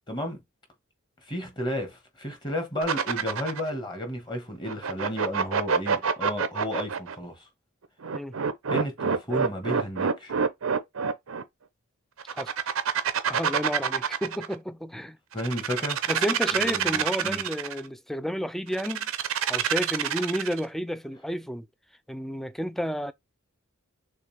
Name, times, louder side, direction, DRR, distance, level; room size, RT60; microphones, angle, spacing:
voice 1, 0.1-0.4 1.3-7.4 8.7-10.3 15.3-16.0 16.6-17.4, equal, 25° left, 1.5 m, -32 dB
sound 1, 2.8-3.7 4.7-7.1 8.0-11.4 12.2-14.5 15.3-17.8 18.7-20.6, right 6 dB, 85° right, 0.7 m, -27 dB
voice 2, 13.3-15.2 16.1-19.1 19.5-21.7 22.1-23.1, equal, ahead, 0.3 m, -31 dB
6.4 x 2.4 x 3.3 m
head